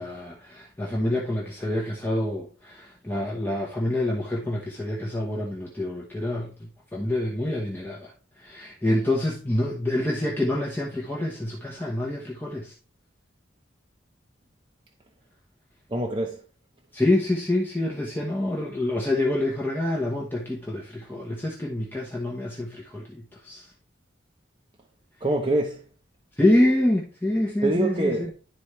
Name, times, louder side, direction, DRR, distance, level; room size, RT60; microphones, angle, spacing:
voice 1, 0.0-8.1 8.4-12.7 16.9-23.7 26.4-28.3, left 1 dB, 10° left, 1.0 m, -27 dB
voice 2, 15.9-16.4 25.2-25.8 27.6-28.3, right 2 dB, 25° right, 0.8 m, -25 dB
11.0 x 4.3 x 3.2 m
head